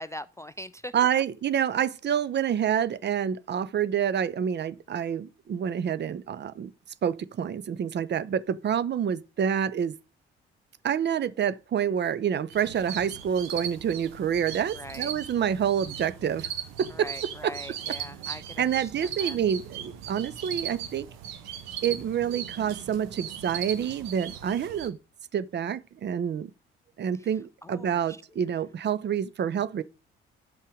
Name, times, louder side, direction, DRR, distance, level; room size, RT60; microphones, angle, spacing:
voice 1, 0.0-0.9 14.7-15.1 16.9-19.4 27.1-27.3 27.6-28.2, left 1 dB, 10° left, 0.3 m, -42 dB
voice 2, 0.9-6.7 7.0-10.0 10.8-16.5 16.8-17.5 18.6-21.1 21.8-25.0 25.3-26.5 27.0-29.8, right 8 dB, 35° right, 0.7 m, -28 dB
sound 1, 12.5-24.9, right 9 dB, 60° right, 1.3 m, -38 dB
11.0 x 5.5 x 5.0 m
figure-of-eight pair, 45°, 30 cm